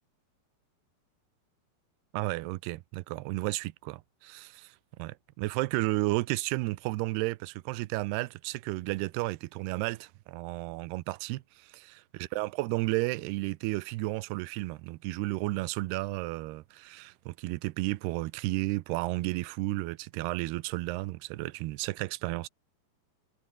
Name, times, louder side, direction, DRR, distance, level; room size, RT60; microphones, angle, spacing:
voice 1, 2.1-11.9 12.1-22.5, right 20 dB, 85° right, 2.8 m, -33 dB
omnidirectional pair, 4.6 m